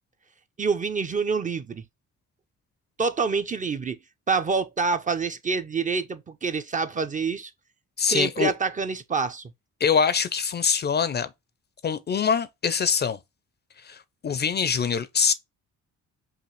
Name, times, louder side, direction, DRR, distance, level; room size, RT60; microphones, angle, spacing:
voice 1, 0.6-1.8 3.0-4.0 4.3-7.5 8.0-9.5, right 5 dB, 25° right, 0.5 m, -27 dB
voice 2, 8.0-8.5 9.8-11.3 11.8-13.2 13.9-14.0 14.2-15.3, left 6 dB, 35° left, 0.4 m, -23 dB
5.6 x 2.4 x 3.0 m
cardioid pair, 90°, 30 cm